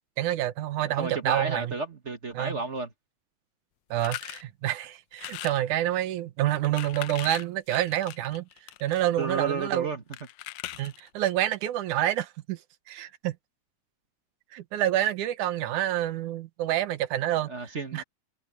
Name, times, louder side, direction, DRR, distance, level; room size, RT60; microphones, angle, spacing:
voice 1, 0.2-1.7 2.3-2.6 3.9-8.5 8.8-9.9 10.8-12.6 12.9-13.4 14.5-17.5 17.9-18.0, right 13 dB, 90° right, 2.5 m, -28 dB
voice 2, 0.8-2.9 9.2-10.0 17.4-18.0, right 4 dB, 30° right, 1.4 m, -32 dB
sound 1, 4.0-4.4 5.1-5.6 6.5-9.0 10.1-11.1, left 15 dB, 80° left, 1.6 m, -40 dB
omnidirectional pair, 3.4 m